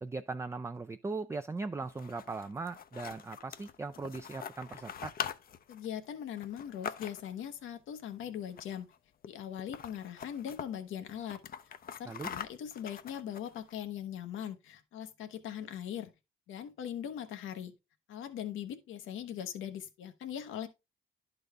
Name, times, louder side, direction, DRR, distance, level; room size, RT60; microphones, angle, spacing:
voice 1, 0.0-5.1 12.1-12.3, right 3 dB, 15° right, 0.4 m, -39 dB
sound 1, 1.8-7.5 8.5-9.0 9.2-9.3 9.6-10.7 11.1-13.7, left 8 dB, 50° left, 0.6 m, -43 dB
voice 2, 5.7-8.9 9.2-11.4 11.9-16.1 16.5-17.7 18.1-20.7, left 9 dB, 80° left, 1.0 m, -40 dB
11.0 x 4.0 x 3.4 m
cardioid pair, 90°, 20 cm